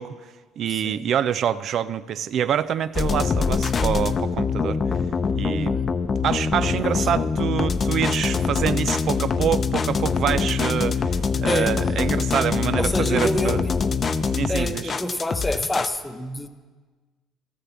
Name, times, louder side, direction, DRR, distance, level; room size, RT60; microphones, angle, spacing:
voice 1, 0.0-4.8 5.3-5.8 6.2-13.6 14.3-15.0, right 9 dB, 60° right, 15 dB, 0.3 m, -26 dB
voice 2, 0.7-1.1 5.6-5.9 6.8-6.9 11.5-11.7 12.8-13.7 14.5-16.5, left 1 dB, 15° left, 9 dB, 0.9 m, -27 dB
sound 1, 2.9-16.0, left 5 dB, 40° left, 0.6 m, -24 dB
13.0 x 6.6 x 7.2 m, 1.4 s
hypercardioid pair, 65°, 0 cm